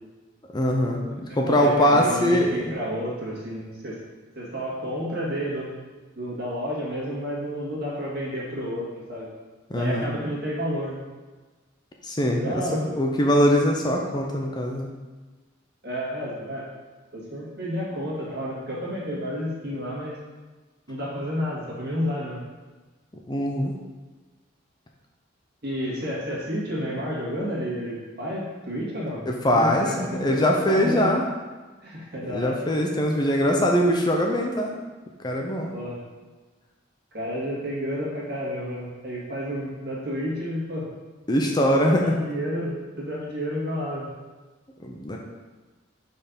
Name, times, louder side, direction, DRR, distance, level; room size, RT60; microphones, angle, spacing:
voice 1, 0.5-2.7 9.7-10.1 12.0-14.9 23.3-23.7 29.3-29.9 30.1-31.2 32.3-34.7 35.2-35.7 41.3-42.2 44.8-45.2, equal, 20° left, 1 dB, 0.5 m, -22 dB
voice 2, 1.3-4.0 4.4-5.7 6.2-9.3 9.7-11.0 12.3-12.9 15.8-16.7 17.1-20.2 20.9-22.4 25.6-29.2 29.5-31.1 31.8-32.6 35.7-36.0 37.1-40.9 41.7-44.1, equal, 55° right, -5 dB, 2.0 m, -31 dB
5.7 x 4.3 x 5.3 m, 1.3 s
head